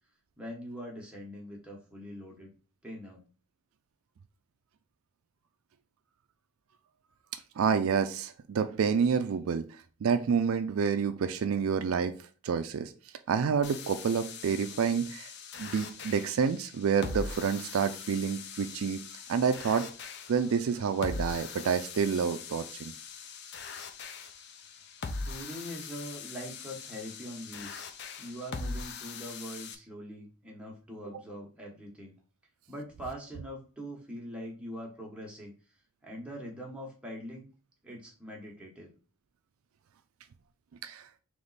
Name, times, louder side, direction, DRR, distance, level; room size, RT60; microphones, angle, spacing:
voice 1, 0.4-2.5 2.8-3.3 25.2-27.8 28.2-32.2 32.7-35.5 36.0-37.5 37.8-38.9, equal, 5° right, -2 dB, 1.1 m, -42 dB
voice 2, 7.6-9.7 10.0-12.1 12.4-12.9 13.3-15.3 15.6-19.0 19.3-19.9 20.3-22.9 40.8-41.1, right 6 dB, 70° right, 9 dB, 0.4 m, -28 dB
sound 1, 13.6-29.7, left 4 dB, 50° left, 0.5 m, -42 dB
3.4 x 3.0 x 4.0 m, 0.36 s
head